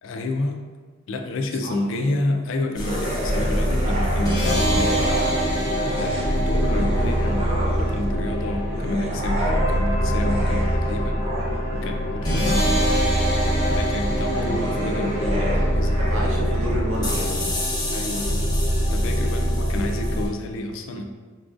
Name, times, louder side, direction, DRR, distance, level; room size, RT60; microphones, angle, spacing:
voice 1, 0.0-0.6 1.1-5.4 5.9-11.3 11.7-12.9 13.8-16.1 17.9-18.5 18.9-21.0, left 2 dB, 60° left, 5 dB, 0.3 m, -29 dB
sound 1, 2.8-20.3, equal, 20° left, 0.6 m, -23 dB
sound 2, 2.8-5.5 5.8-8.1 8.7-17.3, right 1 dB, 30° right, 0.4 m, -32 dB
voice 2, 14.3-15.1 16.0-17.5, equal, 60° right, -3 dB, 0.7 m, -30 dB
3.8 x 2.5 x 2.4 m, 1.4 s
head